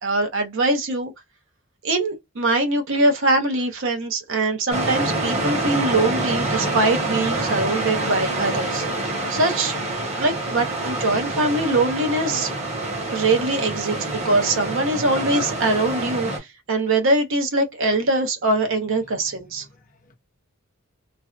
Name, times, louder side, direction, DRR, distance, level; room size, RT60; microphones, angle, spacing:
voice 1, 0.0-1.1 1.8-8.8 9.3-9.7 10.2-12.5 13.1-14.0 14.2-19.7, right 2 dB, 60° right, 0.7 m, -22 dB
sound 1, 4.7-16.4, right 2 dB, 30° right, 1.1 m, -26 dB
voice 2, 19.0-20.1, equal, 40° left, 0.7 m, -53 dB
2.5 x 2.2 x 2.3 m
head